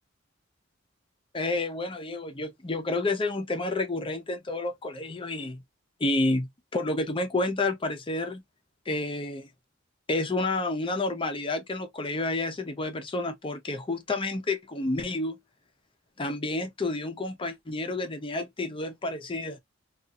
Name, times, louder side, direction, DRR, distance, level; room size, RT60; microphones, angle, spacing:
voice 1, 1.3-5.6 6.0-8.4 8.9-9.5 10.1-15.4 16.2-19.6, left 2 dB, 25° left, 0.6 m, -30 dB
2.7 x 2.4 x 2.3 m
head